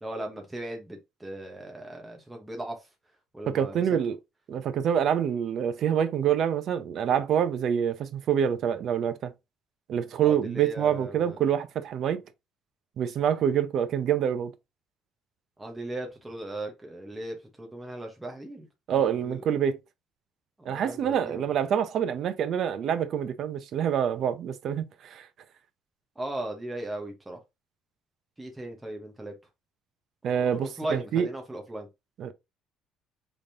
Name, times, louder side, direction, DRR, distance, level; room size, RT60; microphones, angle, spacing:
voice 1, 0.0-2.8 3.3-4.0 10.2-11.4 15.6-19.4 20.6-21.4 26.2-27.4 28.4-29.3 30.2-31.9, right 1 dB, 10° right, 1.1 m, -37 dB
voice 2, 3.5-4.2 4.5-9.3 9.9-12.2 13.0-14.5 18.9-19.8 20.7-25.3 30.2-31.3 32.2-32.3, right 8 dB, 50° right, 0.6 m, -26 dB
5.1 x 3.6 x 2.8 m
cardioid pair, 150°, 0 cm